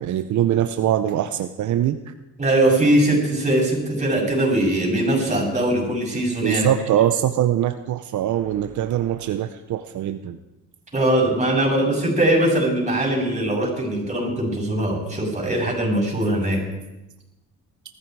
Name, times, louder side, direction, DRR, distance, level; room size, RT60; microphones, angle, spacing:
voice 1, 0.0-2.1 6.4-10.4, right 11 dB, 70° right, 10 dB, 0.8 m, -22 dB
voice 2, 2.4-6.7 10.9-16.6, right 1 dB, 25° right, -3 dB, 7.6 m, -21 dB
20.0 x 14.0 x 4.8 m, 0.98 s
cardioid pair, 90°, 30 cm